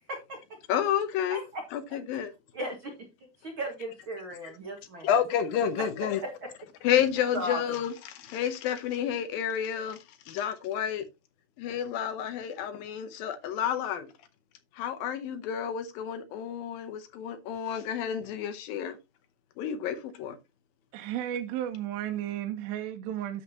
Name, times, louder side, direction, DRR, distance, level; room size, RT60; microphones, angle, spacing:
voice 1, 0.1-0.4 1.3-1.6 1.9-2.0 2.5-2.9 3.4-5.2 5.8-5.9 6.2-6.5 7.3-7.6, right 1 dB, 50° right, 1.5 m, -36 dB
voice 2, 0.7-1.4 1.7-2.3 4.4-4.5 5.0-6.2 6.8-10.0 10.3-11.1 11.6-14.1 14.7-19.0 19.6-20.4, left 9 dB, 75° left, 2.3 m, -30 dB
voice 3, 20.9-23.4, right 11 dB, 85° right, 2.9 m, -33 dB
9.8 x 7.6 x 2.8 m
omnidirectional pair, 4.9 m